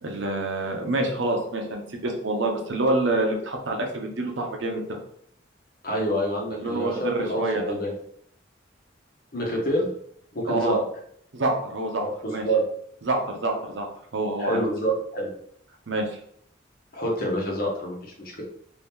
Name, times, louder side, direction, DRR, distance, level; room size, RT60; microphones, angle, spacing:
voice 1, 0.0-5.0 6.5-7.6 10.5-10.8 11.3-12.0 12.3-12.4 13.0-14.7 15.9-16.2, right 2 dB, 75° right, 2 dB, 0.7 m, -27 dB
voice 2, 5.8-7.9 9.3-9.9 10.3-10.8 12.0-12.6 14.4-15.3 16.9-18.4, right 1 dB, 55° left, -2 dB, 1.0 m, -27 dB
2.8 x 2.7 x 3.5 m, 0.65 s
head